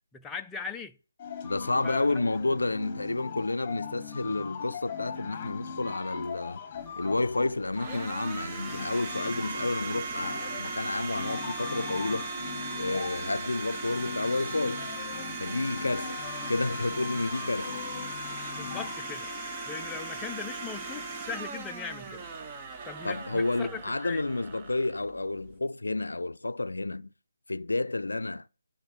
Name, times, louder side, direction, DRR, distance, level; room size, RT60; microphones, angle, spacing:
voice 1, 0.1-0.9 1.8-2.1 18.6-19.3 19.7-22.3 22.9-24.2, left 6 dB, 10° left, 0.4 m, -39 dB
sound 1, 1.2-19.1, left 7 dB, 25° left, 1.2 m, -41 dB
voice 2, 1.4-6.6 7.0-12.3 12.8-14.9 15.4-17.8 23.0-27.1 27.5-28.5, left 2 dB, 80° left, 0.4 m, -30 dB
Domestic sounds home sounds, 6.8-25.6, right 3 dB, 25° right, 0.9 m, -38 dB
9.7 x 3.7 x 7.1 m
figure-of-eight pair, 155°, 0 cm